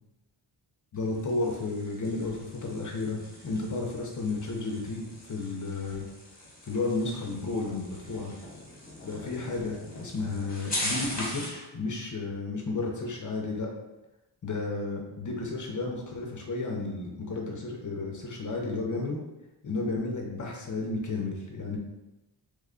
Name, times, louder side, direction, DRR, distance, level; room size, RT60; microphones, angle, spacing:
voice 1, 0.9-6.0 6.6-8.3 9.0-13.7 14.4-19.2 19.6-21.8, left 3 dB, 45° left, 0 dB, 0.5 m, -32 dB
sound 1, 0.9-11.6, left 1 dB, 20° left, 0.9 m, -40 dB
3.2 x 2.2 x 3.6 m, 0.97 s
wide cardioid pair, 150°, 43 cm